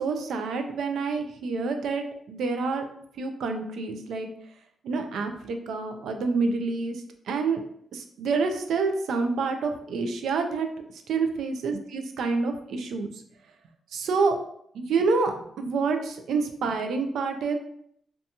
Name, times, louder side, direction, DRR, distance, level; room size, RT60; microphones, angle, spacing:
voice 1, 0.0-2.8 3.2-4.3 4.8-7.6 7.9-10.7 10.9-13.2 13.9-14.4 14.7-17.6, right 4 dB, 80° right, 6 dB, 0.3 m, -28 dB
2.6 x 2.2 x 2.7 m, 0.68 s
cardioid pair, 95°, 0 cm